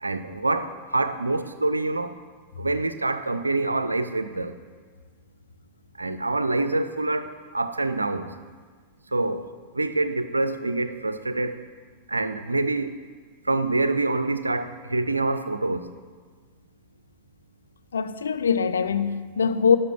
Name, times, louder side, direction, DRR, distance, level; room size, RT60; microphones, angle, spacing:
voice 1, 0.0-2.2 2.6-4.6 6.0-8.3 9.1-9.5 9.7-11.6 12.1-13.0 13.5-15.9, right 2 dB, 80° right, 12 dB, 0.5 m, -26 dB
voice 2, 17.9-19.8, left 6 dB, 70° left, 10 dB, 0.5 m, -22 dB
12.0 x 5.5 x 5.8 m, 1.5 s
figure-of-eight pair, 90°, 0 cm